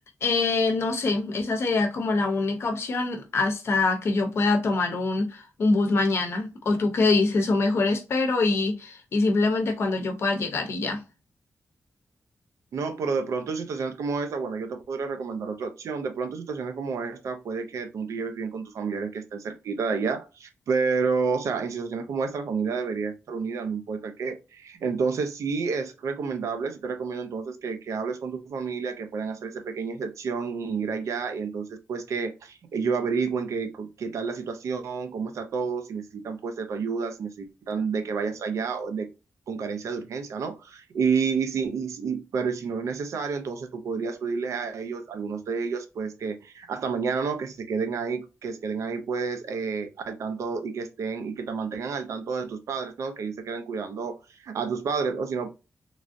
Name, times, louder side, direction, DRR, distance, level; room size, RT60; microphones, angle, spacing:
voice 1, 0.2-11.0, left 3 dB, 55° left, 0.6 m, -24 dB
voice 2, 12.7-39.1 39.5-55.5, right 5 dB, 85° right, 0.5 m, -30 dB
3.2 x 2.4 x 2.5 m
wide cardioid pair, 180°, 5 cm